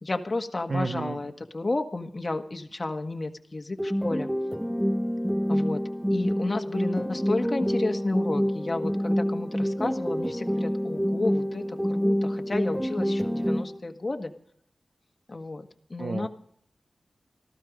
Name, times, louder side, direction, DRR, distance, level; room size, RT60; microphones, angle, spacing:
voice 1, 0.0-4.3 5.5-5.8 6.1-14.3 15.3-16.3, left 2 dB, 40° left, 5 dB, 1.6 m, -32 dB
voice 2, 0.7-1.2 16.0-16.3, right 3 dB, 60° right, 7 dB, 1.1 m, -30 dB
sound 1, 3.8-13.8, equal, 5° right, 0.7 m, -27 dB
14.5 x 13.0 x 5.2 m, 0.66 s
cardioid pair, 45°, 0 cm